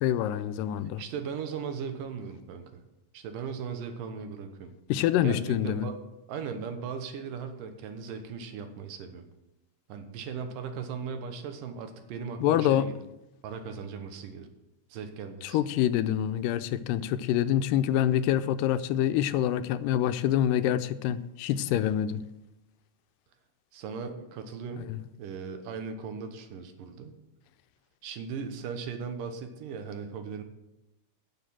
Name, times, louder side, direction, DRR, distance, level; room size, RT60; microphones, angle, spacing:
voice 1, 0.0-1.0 4.9-5.9 12.4-12.9 15.4-22.2 24.9-25.0, left 11 dB, 90° left, 13 dB, 2.3 m, -26 dB
voice 2, 1.0-2.8 3.1-4.7 5.2-6.0 6.3-9.3 9.9-12.9 13.4-14.5 14.9-15.6 23.7-24.9 25.2-27.1 28.0-30.4, right 6 dB, 85° right, 7 dB, 2.8 m, -38 dB
10.5 x 6.6 x 7.6 m, 0.95 s
omnidirectional pair, 3.8 m